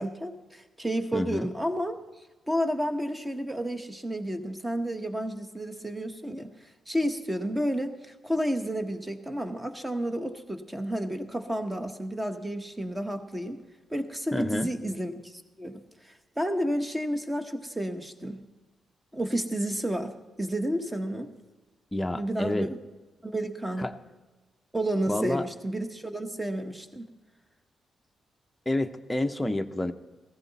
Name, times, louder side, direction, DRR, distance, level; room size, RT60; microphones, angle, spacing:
voice 1, 0.0-13.6 13.9-18.4 19.1-21.3 22.1-22.8 23.2-23.9 24.7-27.1, equal, 10° right, 7 dB, 1.0 m, -31 dB
voice 2, 1.1-1.5 14.3-14.7 21.9-22.7 23.8-23.9 25.1-25.4 28.7-29.9, left 1 dB, 10° left, 7 dB, 0.7 m, -29 dB
15.0 x 15.0 x 4.1 m, 1.2 s
cardioid pair, 115°, 0 cm